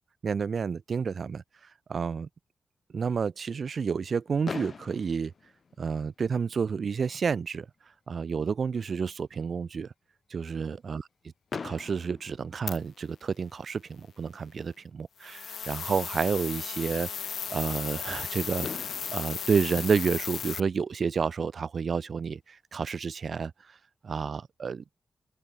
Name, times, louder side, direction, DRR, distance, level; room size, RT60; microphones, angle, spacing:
voice 1, 0.2-1.4 1.9-2.3 2.9-5.3 5.8-7.7 8.1-9.9 10.3-11.0 11.6-17.1 17.5-23.5 24.0-24.8, right 6 dB, 55° right, 0.3 m, -30 dB
Fireworks, 4.4-6.5 7.3-7.4 7.6-7.8 8.1-8.2 11.5-13.3 15.0-15.1 18.2-18.3 18.6-20.9, left 5 dB, 50° left, 0.9 m, -42 dB
sound 1, 12.7-12.8 15.2-20.6, left 7 dB, 85° left, 0.5 m, -35 dB
open air
wide cardioid pair, 135°, 0 cm